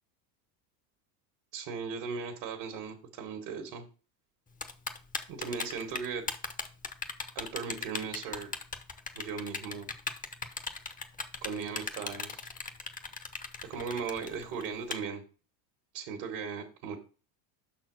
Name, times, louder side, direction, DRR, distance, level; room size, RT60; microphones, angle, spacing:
voice 1, 1.5-3.9 5.3-6.3 7.4-8.5 9.2-9.9 11.4-12.5 13.6-15.2 15.9-17.0, right 6 dB, 65° right, 3 dB, 1.7 m, -37 dB
Typing, 4.6-14.9, left 4 dB, 15° left, 0.8 m, -37 dB
5.8 x 4.3 x 6.1 m, 0.36 s
supercardioid pair, 95°, 47 cm